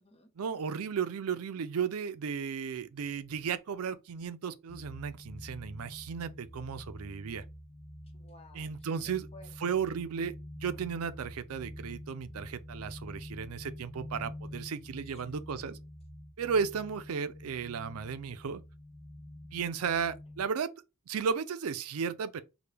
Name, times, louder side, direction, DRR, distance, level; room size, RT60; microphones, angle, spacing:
voice 1, 0.4-7.4 8.5-9.3 9.6-15.8 16.4-18.6 19.5-20.7 21.1-22.4, right 6 dB, 75° right, 0.4 m, -34 dB
sound 1, 4.7-20.4, left 1 dB, 5° left, 0.3 m, -47 dB
voice 2, 8.1-9.8 15.1-15.2, left 1 dB, 30° left, 0.9 m, -56 dB
4.8 x 2.2 x 3.3 m
head